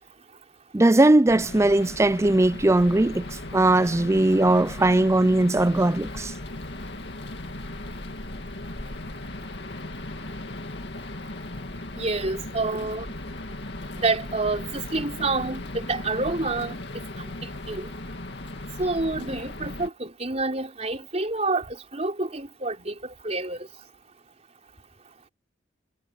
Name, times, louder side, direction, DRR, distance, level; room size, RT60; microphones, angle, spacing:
voice 1, 0.7-3.2 3.5-6.3, right 2 dB, 15° right, 0.4 m, -19 dB
sound 1, 1.3-19.9, left 2 dB, 65° left, 2.2 m, -37 dB
voice 2, 12.0-13.1 13.9-16.7 17.7-17.9 18.8-22.9 23.2-23.6, right 3 dB, 35° right, 4.4 m, -28 dB
head